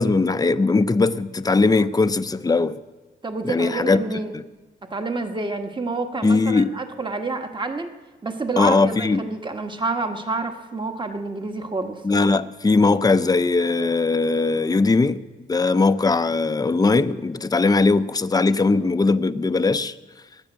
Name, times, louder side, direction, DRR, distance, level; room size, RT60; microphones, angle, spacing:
voice 1, 0.0-2.8 3.4-4.0 4.3-4.4 6.2-6.7 8.6-9.2 12.0-15.2 15.5-19.9, left 3 dB, 20° left, 0.6 m, -19 dB
voice 2, 3.2-4.3 4.9-7.9 8.2-12.0, right 3 dB, 25° right, 1.4 m, -28 dB
18.0 x 9.9 x 7.7 m
cardioid pair, 80°, 20 cm